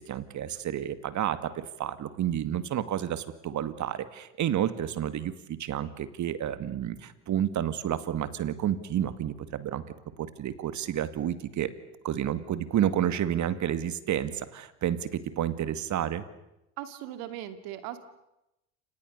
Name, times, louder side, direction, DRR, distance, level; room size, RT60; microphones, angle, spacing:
voice 1, 0.0-9.8 10.2-11.7 12.0-16.3, right 10 dB, 50° right, 12 dB, 2.4 m, -30 dB
voice 2, 16.8-18.0, right 12 dB, 70° right, 10 dB, 2.8 m, -38 dB
29.0 x 27.5 x 6.8 m, 0.90 s
hypercardioid pair, 65°, 38 cm